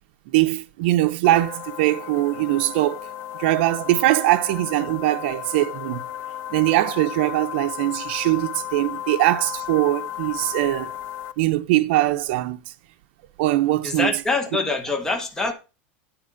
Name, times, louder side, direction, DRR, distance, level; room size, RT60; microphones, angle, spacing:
voice 1, 0.3-3.1 3.4-6.0 6.5-10.9 11.4-12.6 13.4-14.1, right 16 dB, 60° right, 0.7 m, -21 dB
sound 1, 1.2-11.3, left 11 dB, 40° left, 0.6 m, -34 dB
voice 2, 13.8-15.5, left 3 dB, 10° left, 1.1 m, -24 dB
9.0 x 5.2 x 4.8 m
supercardioid pair, 160°, 6 cm